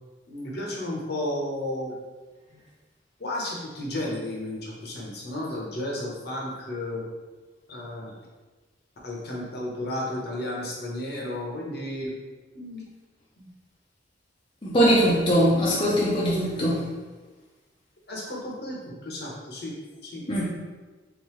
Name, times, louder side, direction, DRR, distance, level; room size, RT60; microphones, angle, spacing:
voice 1, 0.3-1.9 2.5-2.6 3.2-7.0 7.7-8.1 9.0-12.2 12.5-12.9 13.4-13.5 14.8-15.6 18.1-19.7 20.0-20.4, left 1 dB, 60° left, -3 dB, 1.1 m, -33 dB
voice 2, 14.6-16.8 20.3-20.4, equal, 25° left, -6 dB, 0.6 m, -21 dB
3.9 x 3.6 x 3.1 m, 1.3 s
head